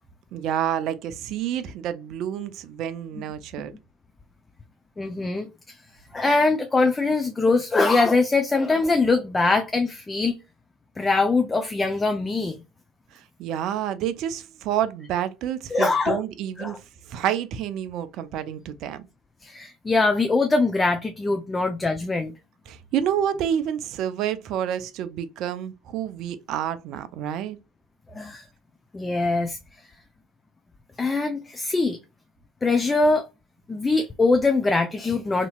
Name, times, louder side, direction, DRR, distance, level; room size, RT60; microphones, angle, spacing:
voice 1, 0.3-3.7 13.1-16.8 17.1-19.1 22.7-27.6, right 10 dB, 60° right, 0.4 m, -29 dB
voice 2, 5.0-5.8 6.1-10.3 11.0-12.6 15.7-16.2 16.6-16.8 19.4-22.3 28.1-28.4 28.9-29.6 31.0-32.0 32.6-33.2 33.7-35.5, left 3 dB, 20° left, 0.5 m, -22 dB
2.9 x 2.7 x 2.3 m
hypercardioid pair, 60°, 0 cm